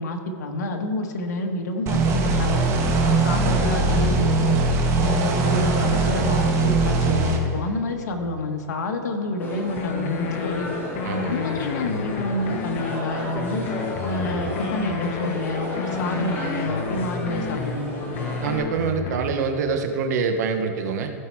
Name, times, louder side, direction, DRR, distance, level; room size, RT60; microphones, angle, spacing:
voice 1, 0.0-2.6 3.0-4.6 5.0-10.8 11.3-13.6 14.0-18.1, left 2 dB, 85° left, 4 dB, 1.4 m, -28 dB
sound 1, 1.9-7.4, right 3 dB, 30° right, 1.4 m, -21 dB
sound 2, 9.4-18.6, left 1 dB, 20° left, 2.5 m, -32 dB
sound 3, 9.8-10.5 10.9-13.0 13.3-15.3 15.7-17.8 18.1-19.4, left 6 dB, 55° left, 0.9 m, -31 dB
voice 2, 11.0-11.4 18.4-21.1, right 5 dB, 70° right, 6 dB, 1.1 m, -25 dB
16.0 x 5.6 x 4.7 m, 2.4 s
supercardioid pair, 145°, 9 cm